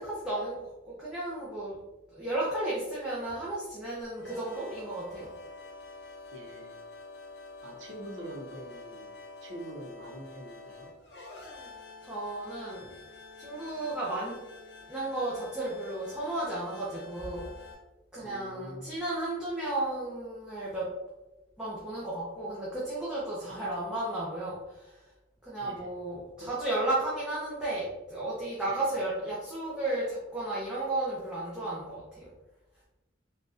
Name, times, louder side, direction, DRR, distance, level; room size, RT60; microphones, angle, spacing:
voice 1, 0.0-1.8 2.1-5.3 12.0-12.9 13.4-14.3 14.9-17.5 18.1-20.9 21.6-25.0 25.4-32.3, right 2 dB, 5° right, -9 dB, 0.6 m, -33 dB
sound 1, 4.1-17.7, left 3 dB, 60° left, 0.8 m, -48 dB
voice 2, 6.3-6.7 7.6-9.1 9.4-10.9 18.2-18.9 23.5-23.8 25.6-25.9 26.4-26.5 28.7-28.9, right 1 dB, 75° right, 1 dB, 0.7 m, -44 dB
3.7 x 2.3 x 2.6 m, 1.0 s
head